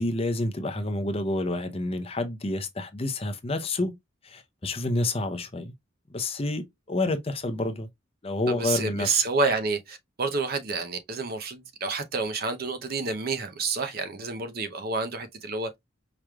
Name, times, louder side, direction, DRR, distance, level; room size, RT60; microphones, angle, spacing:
voice 1, 0.0-3.9 4.2-5.7 6.1-6.6 6.9-7.9 8.2-9.2, left 2 dB, 25° left, 0.6 m, -29 dB
voice 2, 8.5-15.8, right 4 dB, 45° right, 0.6 m, -29 dB
4.9 x 3.1 x 2.2 m
head